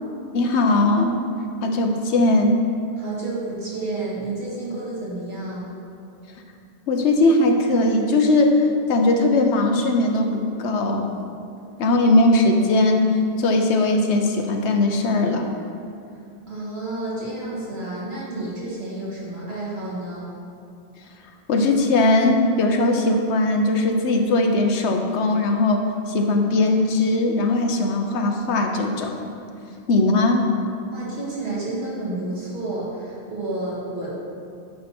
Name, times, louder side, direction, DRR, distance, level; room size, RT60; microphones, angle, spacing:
voice 1, 0.3-1.1 1.6-2.5 6.9-11.1 11.8-13.0 13.4-15.5 21.5-25.8 26.1-29.1 29.9-30.5, left 2 dB, 85° left, 4 dB, 1.1 m, -19 dB
voice 2, 3.0-5.7 16.5-20.3 30.9-34.1, right 2 dB, 70° right, -7 dB, 2.4 m, -30 dB
9.2 x 5.8 x 4.3 m, 2.6 s
omnidirectional pair, 1.1 m